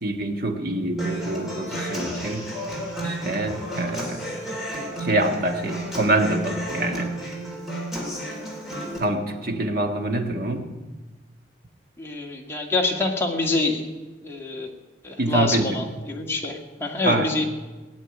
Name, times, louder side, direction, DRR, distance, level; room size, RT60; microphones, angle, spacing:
voice 1, 0.0-2.5 3.0-4.3 5.0-7.1 9.0-10.7 15.2-15.8 17.0-17.3, right 1 dB, 50° right, 4 dB, 1.6 m, -25 dB
Human voice / Acoustic guitar, 1.0-9.0, right 1 dB, ahead, 3.5 m, -32 dB
voice 2, 12.0-13.9 14.2-14.7 15.0-17.5, left 2 dB, 15° left, -1 dB, 1.8 m, -26 dB
16.5 x 7.4 x 9.7 m, 1.2 s
head